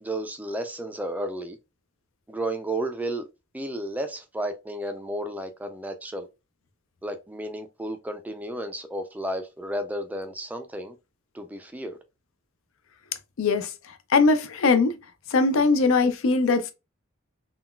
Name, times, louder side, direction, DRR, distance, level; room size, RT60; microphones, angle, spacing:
voice 1, 0.0-1.6 2.3-3.3 3.5-6.3 7.0-10.9 11.3-12.0, right 1 dB, 10° right, 0.3 m, -32 dB
voice 2, 13.4-13.7 14.1-15.0 15.3-16.7, left 4 dB, 70° left, 0.5 m, -20 dB
3.7 x 2.2 x 2.2 m
head